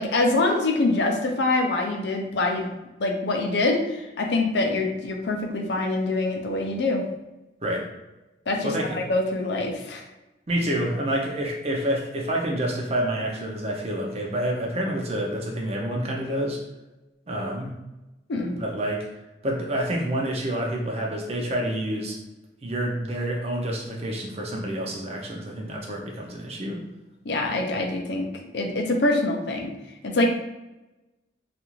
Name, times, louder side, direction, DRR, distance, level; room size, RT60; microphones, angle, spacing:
voice 1, 0.0-2.7 3.0-7.0 8.5-10.0 18.3-18.5 27.3-28.3 28.5-29.7 30.0-30.3, left 2 dB, 65° left, 2 dB, 0.4 m, -24 dB
voice 2, 8.6-9.1 10.5-16.6 17.3-17.7 18.5-19.1 19.4-22.2 22.6-26.8, right 1 dB, 35° right, -1 dB, 0.5 m, -28 dB
2.4 x 2.4 x 3.0 m, 1.0 s
head